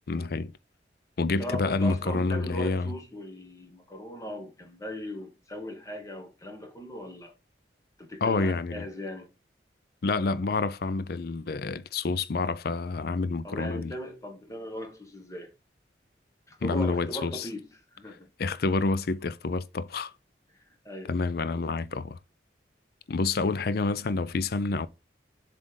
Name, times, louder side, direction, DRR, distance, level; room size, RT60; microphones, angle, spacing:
voice 1, 0.1-0.5 1.2-2.9 8.2-8.8 10.0-13.9 16.6-17.5 18.4-20.1 21.1-22.2 23.1-24.9, left 3 dB, 55° left, 0.5 m, -28 dB
voice 2, 1.4-7.3 8.0-9.3 13.4-15.5 16.5-18.3 20.5-21.1, left 1 dB, 20° left, 1.4 m, -39 dB
7.3 x 3.4 x 3.8 m
head